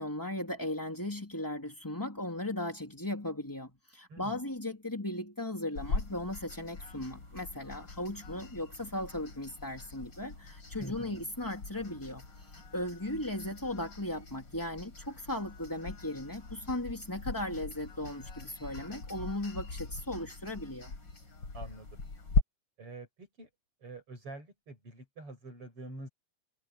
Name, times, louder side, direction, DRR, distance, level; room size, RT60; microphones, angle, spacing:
voice 1, 0.0-20.9, left 1 dB, 5° left, 2.7 m, -37 dB
sound 1, 5.7-22.4, left 3 dB, 35° left, 4.4 m, -40 dB
voice 2, 10.8-11.2 21.5-22.0 22.8-23.5 23.8-26.1, right 2 dB, 45° right, 7.8 m, -46 dB
omnidirectional pair, 3.7 m